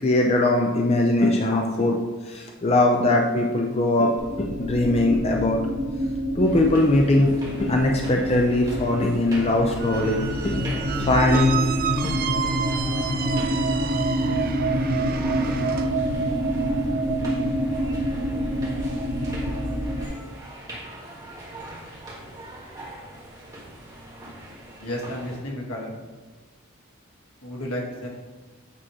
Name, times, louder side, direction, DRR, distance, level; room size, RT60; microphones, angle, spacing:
voice 1, 0.0-2.0 2.3-4.1 4.4-5.6 6.4-10.6 11.0-11.7 12.0-12.1, left 1 dB, 30° left, 1 dB, 0.5 m, -21 dB
sound 1, 4.2-20.1, right 1 dB, 80° right, 1.3 m, -27 dB
sound 2, 6.4-25.4, right 1 dB, 15° right, 1.5 m, -41 dB
Squeak, 9.8-15.9, right 8 dB, 45° right, 0.4 m, -32 dB
voice 2, 24.8-26.0 27.4-28.1, left 1 dB, 80° left, -1 dB, 1.6 m, -32 dB
8.6 x 3.0 x 4.8 m, 1.3 s
head